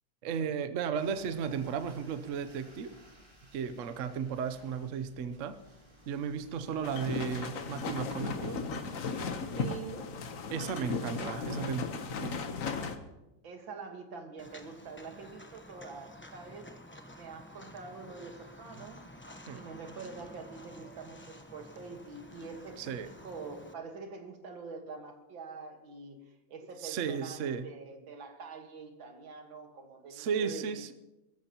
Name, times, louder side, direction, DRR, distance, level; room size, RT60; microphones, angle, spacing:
voice 1, 0.2-2.9 3.5-5.6 6.1-8.6 9.0-9.1 10.5-11.9 12.2-12.4 19.5-19.6 22.8-23.1 26.8-27.7 30.1-30.9, right 7 dB, 55° right, 10 dB, 0.9 m, -34 dB
sound 1, 0.9-7.8, equal, 15° right, 3.0 m, -57 dB
sound 2, 6.8-13.0, left 4 dB, 50° left, 1.2 m, -36 dB
voice 2, 9.5-10.1 10.7-11.5 13.4-16.7 17.0-19.0 19.5-23.0 23.2-30.8, right 4 dB, 80° right, 4 dB, 2.3 m, -45 dB
Walk footsteps, 14.4-23.7, left 1 dB, 15° left, 0.3 m, -51 dB
22.5 x 14.0 x 2.9 m, 0.97 s
omnidirectional pair, 2.1 m